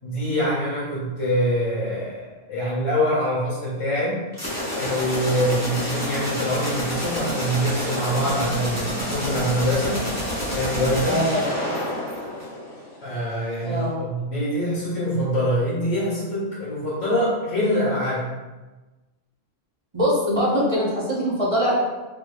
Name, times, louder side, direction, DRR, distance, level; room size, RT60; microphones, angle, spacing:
voice 1, 0.0-4.2 4.7-10.0 10.5-11.2 13.0-18.2, equal, 75° left, -7 dB, 1.8 m, -24 dB
sound 1, 4.3-13.0, equal, 15° left, 1.2 m, -28 dB
voice 2, 11.0-11.5 13.6-14.0 19.9-21.7, equal, 30° right, -6 dB, 0.8 m, -22 dB
4.1 x 3.3 x 2.3 m, 1.2 s
omnidirectional pair, 1.3 m